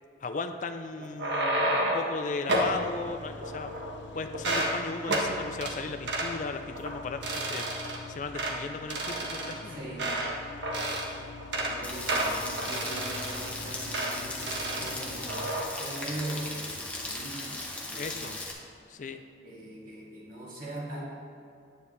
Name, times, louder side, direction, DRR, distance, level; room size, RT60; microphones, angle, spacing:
voice 1, 0.2-3.7 4.1-9.8 18.0-18.4 18.9-19.2, left 3 dB, 45° left, 7 dB, 0.4 m, -36 dB
sound 1, 1.0-2.1 2.5-2.8 3.4-4.0 4.3-4.7 5.1-5.3 5.6-5.7 6.1-6.3 6.7-6.9 7.2-8.0 8.3-8.6 8.9-10.4 10.6-11.1 11.4-11.7 12.1-13.5 13.9-14.1 14.4-14.9 15.3-15.6, right 1 dB, 80° right, 1.3 m, -30 dB
sound 2, 2.6-15.6, left 2 dB, 85° left, 0.6 m, -45 dB
voice 2, 9.7-10.2 11.5-18.4 19.4-21.1, right 1 dB, 50° right, -4 dB, 2.1 m, -41 dB
Rain, 11.8-18.5, left 2 dB, 10° left, 1.0 m, -38 dB
9.6 x 9.5 x 3.2 m, 2.6 s
head